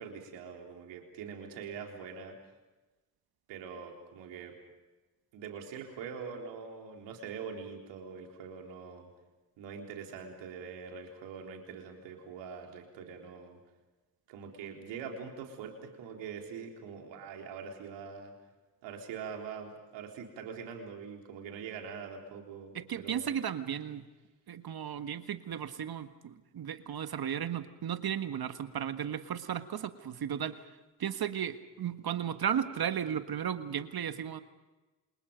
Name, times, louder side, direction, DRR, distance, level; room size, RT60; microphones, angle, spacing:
voice 1, 0.0-2.4 3.5-4.5 5.3-9.1 9.6-13.6 14.3-18.3 18.8-23.3, right 6 dB, 80° right, 2 dB, 3.7 m, -43 dB
voice 2, 22.7-24.0 24.5-30.7 31.0-34.4, right 9 dB, 55° right, 10 dB, 1.7 m, -35 dB
29.0 x 27.5 x 5.2 m, 1.2 s
hypercardioid pair, 40°, 43 cm